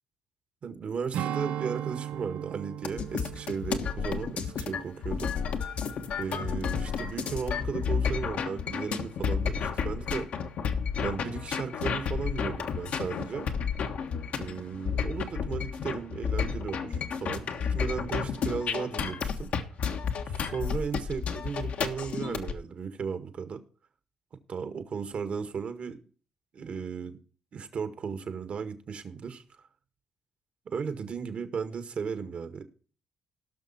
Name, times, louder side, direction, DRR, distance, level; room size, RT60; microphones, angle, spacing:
voice 1, 0.6-5.7 6.2-10.3 11.0-13.5 14.4-19.5 20.3-23.6 24.5-26.0 26.5-27.2 27.5-29.7 30.7-32.6, right 6 dB, 50° right, 10 dB, 1.7 m, -35 dB
Strum, 1.1-5.8 6.2-6.4, right 11 dB, 70° right, 0.5 m, -38 dB
sound 1, 2.8-22.5, left 6 dB, 65° left, 1.4 m, -31 dB
17.5 x 6.2 x 4.3 m, 0.39 s
supercardioid pair, 65°, 3 cm